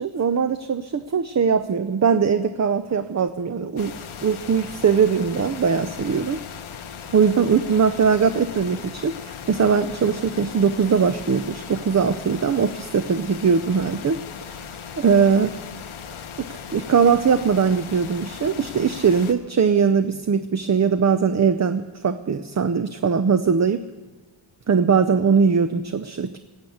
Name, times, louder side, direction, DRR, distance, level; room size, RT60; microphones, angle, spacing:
voice 1, 0.0-4.0 4.2-6.4 7.1-14.2 15.0-15.5 16.4-23.9 24.7-26.4, right 6 dB, 35° right, 10 dB, 0.6 m, -20 dB
sound 1, 3.8-19.3, left 7 dB, 85° left, 1.1 m, -38 dB
17.0 x 7.1 x 8.0 m, 1.3 s
cardioid pair, 65°, 48 cm